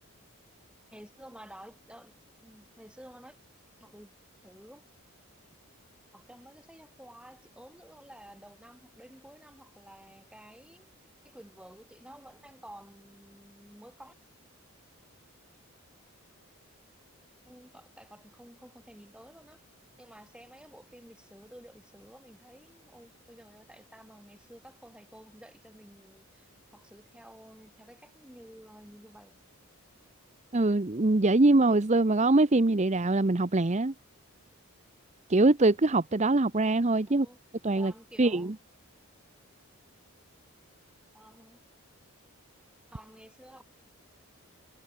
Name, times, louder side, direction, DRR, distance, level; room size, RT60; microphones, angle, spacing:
voice 1, 0.9-3.4 3.8-4.1 4.4-4.8 6.1-10.9 11.2-14.2 17.5-19.6 20.0-29.4 37.1-37.4 37.8-38.5 41.1-41.6 42.9-43.6, equal, 5° right, 6.4 m, -52 dB
voice 2, 30.5-33.9 35.3-37.3 37.6-37.9 38.2-38.5, right 2 dB, 30° right, 0.7 m, -23 dB
head